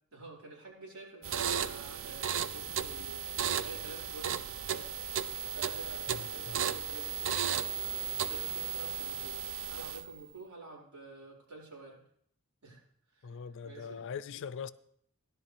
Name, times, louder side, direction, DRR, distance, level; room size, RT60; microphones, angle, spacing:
voice 1, 0.1-4.4 4.7-12.0 12.6-12.8 13.1-14.0, right 3 dB, 80° right, 4.7 m, -49 dB
sound 1, 1.2-10.2, right 8 dB, 65° right, 0.6 m, -35 dB
Wind instrument woodwind instrument, 4.8-9.7, right 1 dB, 25° left, 1.7 m, -61 dB
voice 2, 6.1-6.6 13.2-14.7, left 6 dB, 60° left, 0.5 m, -42 dB
16.0 x 11.0 x 3.4 m
head